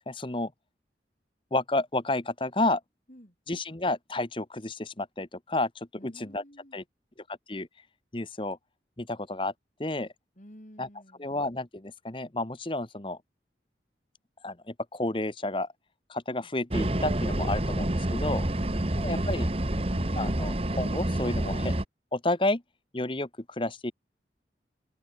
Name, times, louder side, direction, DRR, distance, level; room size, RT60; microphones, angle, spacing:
voice 1, 0.1-0.5 1.5-2.8 3.5-6.4 6.7-6.8 7.5-7.7 8.1-8.6 9.0-9.5 9.8-10.1 10.8-10.9 11.2-13.2 14.4-15.7 16.1-18.4 19.0-19.5 20.2-21.8 22.1-22.6 22.9-23.3 23.6-23.9, left 2 dB, 30° left, 1.2 m, -31 dB
voice 2, 6.0-6.8 10.4-11.3 16.3-16.5 18.5-20.3, equal, 45° left, 7.8 m, -51 dB
sound 1, 16.7-21.8, right 1 dB, 35° right, 1.4 m, -28 dB
head